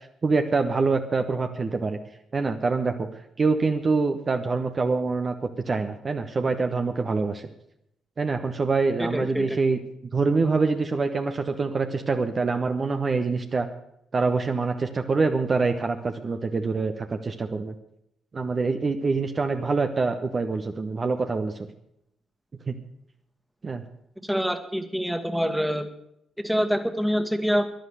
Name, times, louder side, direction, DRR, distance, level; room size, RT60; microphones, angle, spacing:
voice 1, 0.2-2.0 2.3-3.1 3.4-5.4 5.7-7.5 8.2-9.8 10.1-13.7 14.1-17.7 18.3-21.7 22.7-22.8 23.6-23.8, right 4 dB, 40° right, 6 dB, 1.0 m, -25 dB
voice 2, 9.0-9.6 24.2-25.9 26.4-27.7, equal, ahead, 8 dB, 1.7 m, -26 dB
13.0 x 11.0 x 6.6 m, 0.78 s
figure-of-eight pair, 40°, 0 cm